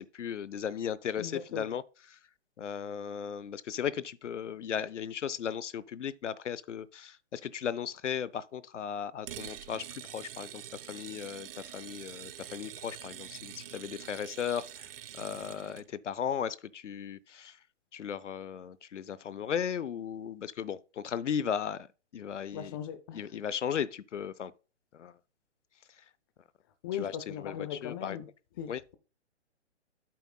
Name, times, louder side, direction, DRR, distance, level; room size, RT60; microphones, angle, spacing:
voice 1, 0.0-1.8 2.1-2.2 2.6-10.6 10.9-14.9 15.1-17.6 17.9-21.9 22.1-22.8 23.1-24.5 24.9-25.2 26.0-26.1 26.9-28.2 28.7-28.8, left 8 dB, 85° left, 0.6 m, -36 dB
voice 2, 1.2-1.7 22.5-23.2 26.8-28.3 28.6-29.0, left 9 dB, 20° left, 0.5 m, -38 dB
sound 1, 9.3-15.9, right 10 dB, 55° right, 0.5 m, -45 dB
8.5 x 7.7 x 2.2 m
hypercardioid pair, 140°, 35 cm